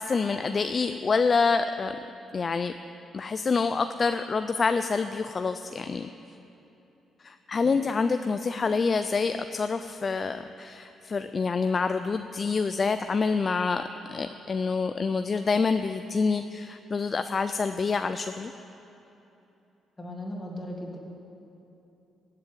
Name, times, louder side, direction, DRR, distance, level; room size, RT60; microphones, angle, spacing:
voice 1, 0.0-1.9 2.3-2.7 3.1-6.1 7.2-13.8 14.1-18.5, left 4 dB, 35° left, 9 dB, 0.5 m, -27 dB
voice 2, 20.0-21.0, left 1 dB, 15° left, -2 dB, 3.0 m, -37 dB
16.0 x 7.6 x 9.4 m, 2.9 s
cardioid pair, 95°, 0 cm